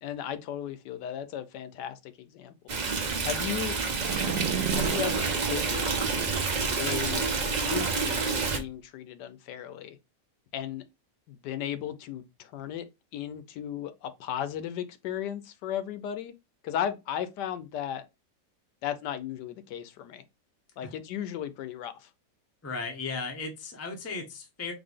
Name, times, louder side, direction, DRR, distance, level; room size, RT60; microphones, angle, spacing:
voice 1, 0.0-2.8 3.2-3.7 4.7-6.1 6.8-7.3 7.7-10.0 10.5-10.8 11.3-12.9 13.1-16.3 16.6-18.0 18.8-20.2 20.8-22.1, left 10 dB, 80° left, 1.2 m, -35 dB
Stream, 2.7-8.6, right 4 dB, 60° right, 0.4 m, -28 dB
sound 1, 3.9-8.6, right 9 dB, 80° right, 1.2 m, -35 dB
voice 2, 22.6-24.7, left 4 dB, 15° left, 0.5 m, -36 dB
3.9 x 3.3 x 3.5 m
omnidirectional pair, 1.9 m